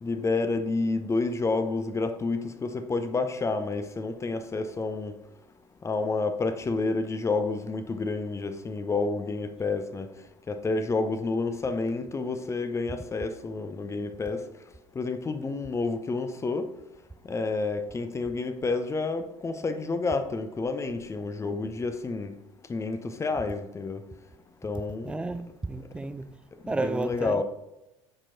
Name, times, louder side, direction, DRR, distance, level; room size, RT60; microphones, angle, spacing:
voice 1, 0.0-5.1 5.8-10.1 10.5-14.4 15.0-16.7 17.3-22.3 22.7-24.0 24.6-25.3 26.6-27.4, left 3 dB, 15° left, 0.7 m, -29 dB
voice 2, 25.0-26.4 26.7-27.4, right 3 dB, 5° right, 0.3 m, -32 dB
8.7 x 4.6 x 3.9 m
figure-of-eight pair, 75°, 17 cm